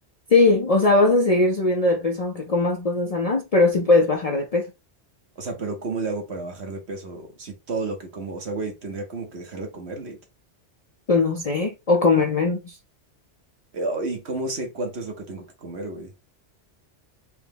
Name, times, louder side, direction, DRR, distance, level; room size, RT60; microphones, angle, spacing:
voice 1, 0.3-4.7 11.1-12.8, left 3 dB, 50° left, 0.5 m, -20 dB
voice 2, 5.4-10.2 13.7-16.1, right 3 dB, 65° right, 1.4 m, -31 dB
4.5 x 2.2 x 3.4 m
omnidirectional pair, 1.2 m